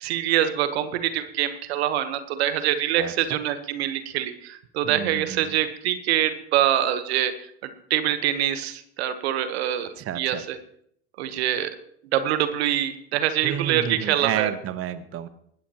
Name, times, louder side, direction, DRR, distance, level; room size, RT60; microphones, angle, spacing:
voice 1, 0.0-7.3 7.6-9.9 10.2-10.6 11.2-11.7 12.1-14.5, right 11 dB, 80° right, 11 dB, 1.2 m, -25 dB
voice 2, 3.0-3.4 4.8-5.5 10.0-10.4 13.4-15.3, right 10 dB, 45° right, 12 dB, 1.1 m, -31 dB
19.5 x 13.5 x 3.0 m, 0.68 s
hypercardioid pair, 85°, 32 cm